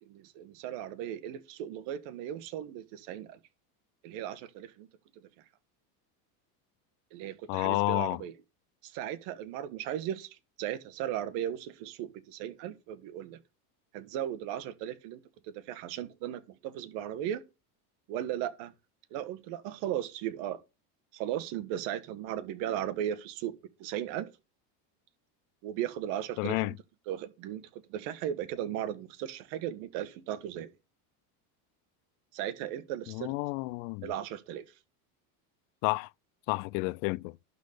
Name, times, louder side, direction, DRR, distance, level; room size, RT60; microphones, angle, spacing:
voice 1, 0.0-3.4 4.0-4.9 7.1-8.3 8.8-13.4 13.9-17.4 18.1-18.7 19.1-20.6 21.1-24.3 25.6-26.7 27.1-30.7 32.3-33.4 34.0-34.6, right 11 dB, 65° right, 1.5 m, -36 dB
voice 2, 7.5-8.2 26.4-26.7 33.1-34.1 35.8-36.1 36.5-37.4, left 24 dB, 70° left, 0.5 m, -30 dB
11.5 x 4.1 x 6.6 m
supercardioid pair, 135°, 45 cm